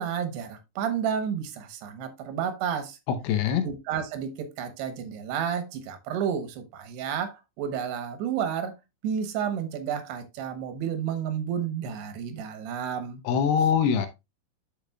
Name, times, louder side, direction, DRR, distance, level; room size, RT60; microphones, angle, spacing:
voice 1, 0.0-3.0 3.6-8.7 9.0-13.2, right 8 dB, 90° right, 3.1 m, -31 dB
voice 2, 3.1-3.7 13.2-14.1, left 7 dB, 80° left, 2.9 m, -23 dB
11.5 x 5.0 x 2.3 m
omnidirectional pair, 4.6 m